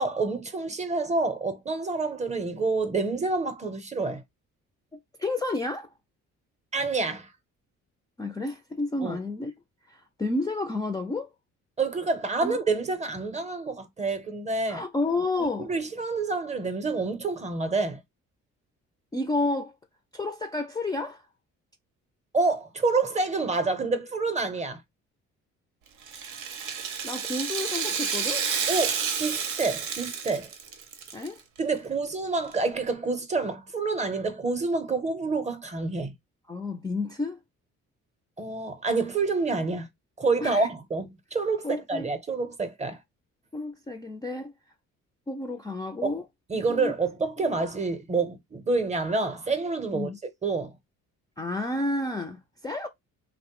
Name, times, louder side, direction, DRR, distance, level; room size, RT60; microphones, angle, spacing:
voice 1, 0.0-4.2 6.7-7.3 9.0-9.2 11.8-14.8 15.4-18.0 22.3-24.8 28.7-30.5 31.6-36.1 38.4-39.9 40.2-43.0 46.0-46.2 46.5-50.1 50.4-50.7, right 3 dB, 25° right, 0.6 m, -28 dB
voice 2, 4.9-5.9 8.2-9.5 9.9-11.3 12.4-12.6 14.7-15.7 19.1-19.7 20.1-21.3 27.0-28.5 31.1-31.4 36.5-37.4 40.4-40.7 41.6-42.1 43.5-44.5 45.3-46.2 46.7-46.9 49.9-50.2 51.4-52.9, left 2 dB, 15° left, 0.3 m, -31 dB
Rattle (instrument), 26.0-31.3 31.6-31.7 32.5-32.6, right 6 dB, 85° right, 0.7 m, -30 dB
3.0 x 2.0 x 2.9 m
cardioid pair, 90°, 30 cm